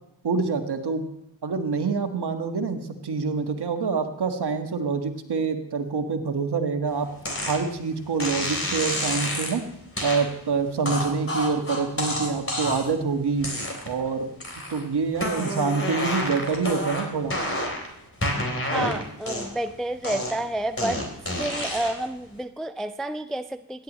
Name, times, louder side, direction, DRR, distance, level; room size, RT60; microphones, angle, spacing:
voice 1, 0.2-1.1 1.4-7.1 7.4-9.6 10.0-13.5 13.8-14.3 14.7-17.3, right 5 dB, 55° right, 5 dB, 1.7 m, -26 dB
sound 1, 7.2-7.6 8.2-9.6 10.0-10.2 10.8-13.0 13.4-14.0 14.4-14.8 15.1-17.9 18.2-19.7 20.0-22.1, left 1 dB, 30° left, 3.8 m, -29 dB
voice 2, 18.7-21.0 21.4-23.8, right 1 dB, ahead, 11 dB, 0.4 m, -30 dB
17.0 x 10.5 x 3.1 m, 0.81 s
supercardioid pair, 45°, 46 cm